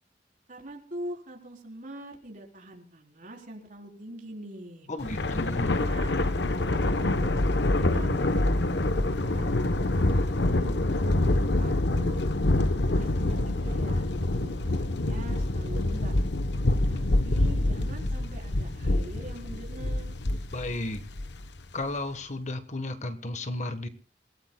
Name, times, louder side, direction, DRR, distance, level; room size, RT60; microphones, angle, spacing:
voice 1, 0.5-4.9 5.7-7.3 7.7-12.2 12.9-16.1 16.9-20.2, right 1 dB, 50° right, 1 dB, 4.1 m, -44 dB
voice 2, 4.9-5.8 20.5-21.0 21.7-23.9, left 2 dB, 45° left, 9 dB, 1.3 m, -33 dB
Thunder, 5.0-21.6, left 2 dB, 75° left, 1.0 m, -26 dB
27.5 x 17.0 x 2.3 m, 0.36 s
head